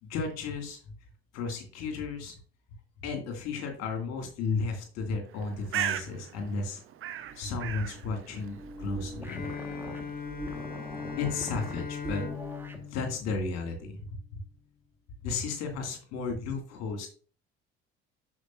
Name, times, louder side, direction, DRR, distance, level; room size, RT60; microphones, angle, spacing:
voice 1, 0.0-0.8 1.3-2.3 3.0-6.8 7.4-9.5 11.2-12.3 12.9-14.0 15.2-17.1, left 4 dB, 55° left, 4 dB, 2.3 m, -33 dB
Bird, 5.3-12.9, right 10 dB, 40° right, 0.9 m, -40 dB
sound 1, 7.2-12.9, right 2 dB, 5° right, 1.5 m, -43 dB
Bowed string instrument, 9.3-14.1, left 7 dB, 30° left, 0.8 m, -39 dB
12.5 x 4.9 x 2.6 m, 0.40 s
figure-of-eight pair, 55°, 32 cm